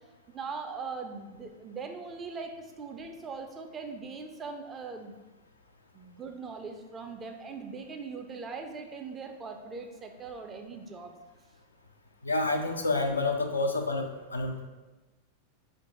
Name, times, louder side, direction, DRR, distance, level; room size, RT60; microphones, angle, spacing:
voice 1, 0.3-5.1 5.9-11.1, right 4 dB, 20° right, 4 dB, 0.5 m, -40 dB
voice 2, 12.2-14.6, left 2 dB, 80° left, 4 dB, 0.4 m, -29 dB
4.4 x 2.6 x 4.3 m, 1.2 s
figure-of-eight pair, 90°, 0 cm